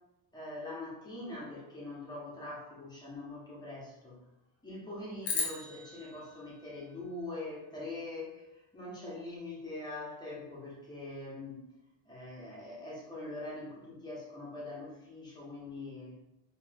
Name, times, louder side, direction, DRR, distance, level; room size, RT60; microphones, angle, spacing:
voice 1, 0.3-4.2 4.6-11.6 12.0-16.2, left 2 dB, 10° left, -5 dB, 1.0 m, -43 dB
sound 1, 5.2-7.7, left 4 dB, 35° left, 0.6 m, -38 dB
3.1 x 2.9 x 3.5 m, 0.91 s
cardioid pair, 160°, 39 cm